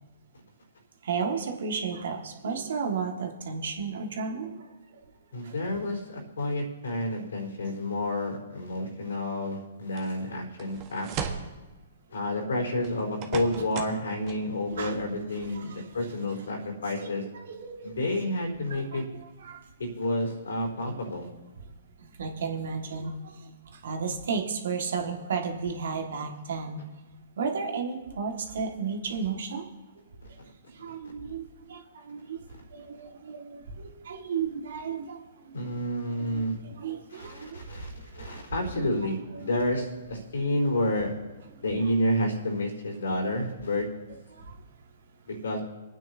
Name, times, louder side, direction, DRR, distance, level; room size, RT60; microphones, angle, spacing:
voice 1, 1.0-4.7 5.4-5.5 7.7-7.8 14.7-16.1 17.0-18.3 18.7-19.6 22.0-26.8 27.4-29.6 30.3-30.4 30.7-32.4 32.7-35.6 36.1-37.9 38.2-38.4 38.7-39.6 41.6-41.9 44.4-44.6, right 5 dB, 70° right, 3 dB, 1.8 m, -34 dB
voice 2, 5.3-11.1 12.1-17.2 17.8-19.0 19.8-21.3 35.5-36.6 37.1-41.1 41.6-43.9 45.3-45.6, left 1 dB, 80° left, 1 dB, 4.1 m, -30 dB
sound 1, 10.0-10.1 10.6-11.5 12.8-14.0 14.3-14.4, right 7 dB, 30° right, 1.4 m, -36 dB
26.5 x 9.2 x 2.8 m, 1.2 s
hypercardioid pair, 135°, 0 cm